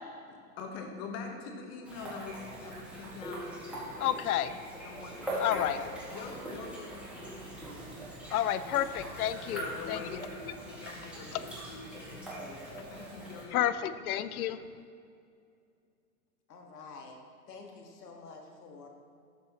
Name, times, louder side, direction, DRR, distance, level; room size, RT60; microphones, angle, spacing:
voice 1, 0.3-4.2 4.8-7.7 8.6-8.9 9.4-13.7, left 4 dB, 35° left, 3 dB, 1.2 m, -45 dB
sound 1, 1.8-13.4, right 1 dB, 5° right, 2.0 m, -42 dB
voice 2, 4.0-4.5 5.4-5.8 8.3-9.6 9.9-10.0 13.5-14.6, left 11 dB, 70° left, 13 dB, 0.6 m, -30 dB
voice 3, 16.5-17.2 17.5-18.9, left 4 dB, 85° left, 2 dB, 1.7 m, -48 dB
12.5 x 6.8 x 3.0 m, 2.4 s
hypercardioid pair, 135°, 46 cm